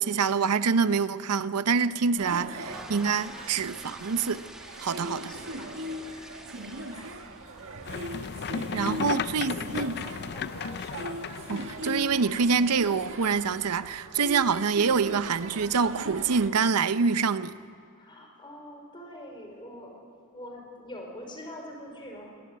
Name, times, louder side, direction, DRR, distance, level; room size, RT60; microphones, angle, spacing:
voice 1, 0.0-4.4 4.8-5.3 8.7-9.9 11.5-17.5, right 5 dB, 85° right, 0.7 m, -26 dB
sound 1, 2.2-16.5, right 1 dB, 60° right, 1.6 m, -39 dB
sound 2, 2.4-10.2, equal, 5° right, 1.8 m, -48 dB
voice 2, 4.9-7.9 8.4-10.4 18.0-22.3, equal, 20° left, 4.6 m, -46 dB
sound 3, 7.9-12.9, left 6 dB, 50° left, 0.5 m, -35 dB
21.0 x 19.0 x 9.5 m
head